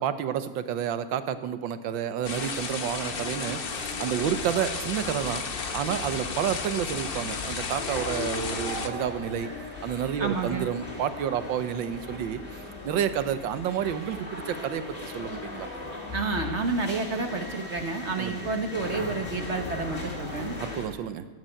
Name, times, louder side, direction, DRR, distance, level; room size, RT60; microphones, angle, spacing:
voice 1, 0.0-5.5 5.7-9.5 9.8-12.4 12.8-15.7 18.2-18.4 20.6-21.3, right 9 dB, 80° right, 12 dB, 1.6 m, -30 dB
sound 1, 2.2-8.9, left 5 dB, 45° left, 0.8 m, -33 dB
sound 2, 3.1-20.9, left 2 dB, 30° left, 2.4 m, -39 dB
voice 2, 10.2-10.7 16.1-20.6, right 3 dB, 40° right, 5 dB, 1.2 m, -30 dB
15.5 x 8.2 x 8.9 m, 1.4 s
omnidirectional pair, 2.1 m